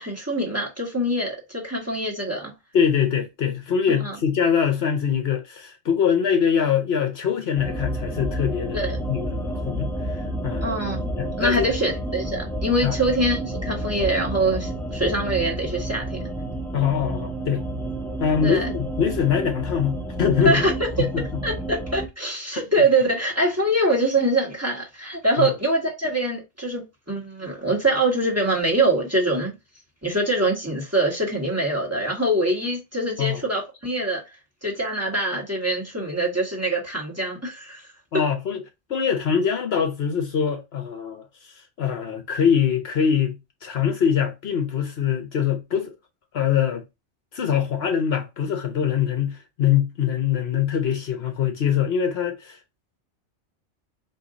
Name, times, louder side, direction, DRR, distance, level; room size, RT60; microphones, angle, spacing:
voice 1, 0.0-2.5 3.9-4.2 8.7-9.0 10.6-11.1 11.4-16.2 18.4-18.7 20.4-21.1 21.4-29.5 30.0-34.2 34.6-37.8, right 1 dB, 15° right, 1.4 m, -24 dB
voice 2, 2.7-10.7 11.2-11.7 12.8-12.9 16.7-17.6 18.2-20.6 21.0-21.2 25.4-25.5 33.2-33.4 38.1-38.6 38.9-45.9 46.3-46.8 47.3-52.6, left 8 dB, 65° left, 1.0 m, -23 dB
sound 1, 7.6-22.1, right 1 dB, ahead, 0.5 m, -30 dB
4.4 x 2.8 x 3.7 m
omnidirectional pair, 1.2 m